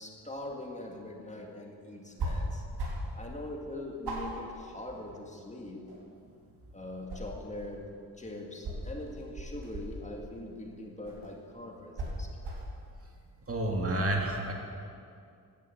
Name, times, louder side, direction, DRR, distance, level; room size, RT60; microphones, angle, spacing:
voice 1, 0.0-2.6 3.2-5.9 6.7-12.3, left 1 dB, 20° left, 0 dB, 2.1 m, -42 dB
sound 1, 2.2-2.4 2.7-3.1 3.5-3.6 4.0-5.4 5.7-6.5 6.9-7.8 8.6-10.2 11.0-11.3 11.9-12.7, right 2 dB, 80° right, 4.3 m, -37 dB
voice 2, 13.5-14.5, right 1 dB, 35° right, 1 dB, 2.2 m, -29 dB
16.0 x 11.0 x 8.5 m, 2.4 s
wide cardioid pair, 120°, 39 cm